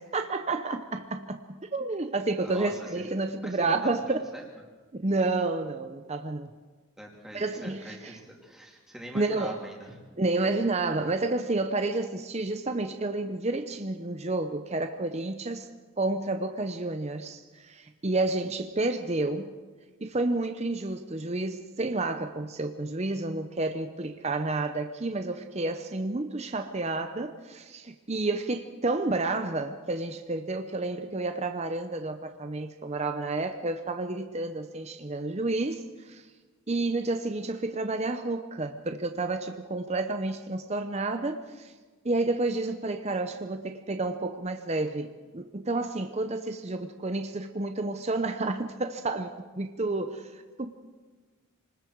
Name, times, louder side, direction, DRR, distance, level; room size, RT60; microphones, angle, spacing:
voice 1, 0.0-4.2 4.9-6.5 7.3-8.1 9.1-9.6 10.2-15.7 16.0-19.5 20.0-36.2 36.7-41.7 42.0-50.7, right 2 dB, 30° right, 7 dB, 0.7 m, -30 dB
voice 2, 2.4-3.0 3.4-4.0 4.3-4.4 7.0-10.0, right 1 dB, ahead, -2 dB, 3.3 m, -43 dB
28.0 x 20.0 x 4.7 m, 1.4 s
head